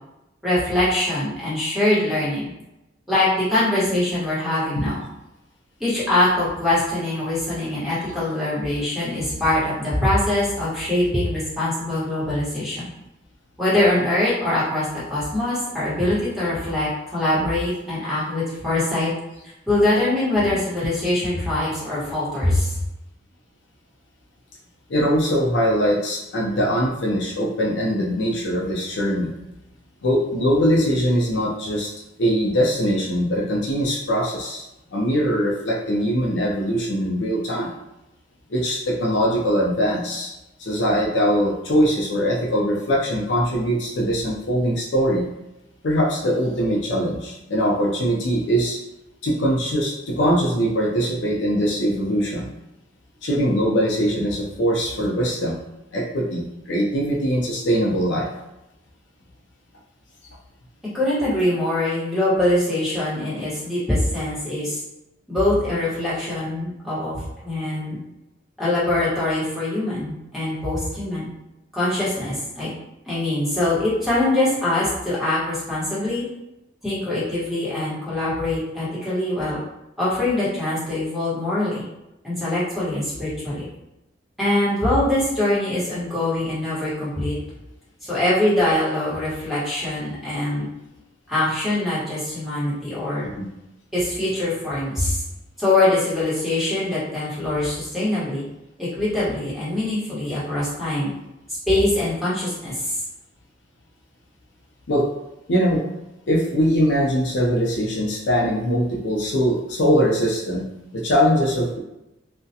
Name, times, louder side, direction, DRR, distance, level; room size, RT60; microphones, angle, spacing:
voice 1, 0.4-2.5 3.1-5.0 5.8-12.8 13.6-19.1 19.7-22.8 60.9-64.8 65.3-68.0 68.6-71.3 71.7-72.7 73.1-76.2 76.8-79.6 80.0-81.8 82.2-83.6 84.4-87.3 88.0-90.7 91.3-93.2 93.9-95.2 95.6-98.4 98.8-101.1 101.7-102.7, left 1 dB, ahead, -10 dB, 1.0 m, -23 dB
voice 2, 24.9-29.3 30.0-31.9 32.2-34.6 34.9-37.7 38.5-40.3 40.6-45.2 45.8-48.8 49.2-52.5 53.2-55.6 55.9-58.3 93.2-93.5 104.9-105.1 105.5-105.8 106.3-110.6 110.9-111.8, equal, 70° left, -3 dB, 0.5 m, -21 dB
2.3 x 2.1 x 2.7 m, 0.92 s
head